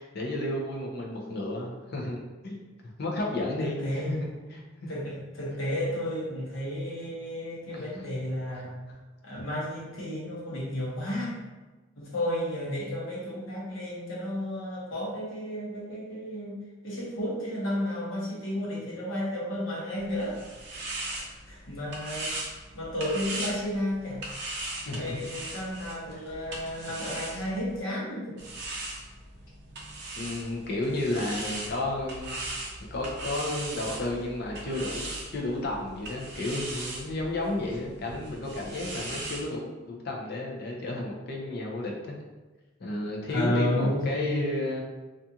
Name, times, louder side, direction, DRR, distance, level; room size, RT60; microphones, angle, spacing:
voice 1, 0.0-4.9 7.7-7.9 8.9-9.0 9.4-9.5 24.9-25.4 30.2-32.4 32.9-42.2 42.8-44.8, left 1 dB, 55° left, -1 dB, 0.5 m, -32 dB
voice 2, 3.6-4.3 4.9-8.7 9.2-11.4 12.0-16.6 16.8-20.4 20.7-21.2 21.5-22.3 22.7-24.2 24.9-28.4 43.3-44.4, left 1 dB, 75° left, -5 dB, 0.9 m, -32 dB
sound 1, 20.0-27.8 28.4-39.5, right 2 dB, 55° right, 0.4 m, -39 dB
2.4 x 2.4 x 2.7 m, 1.2 s
head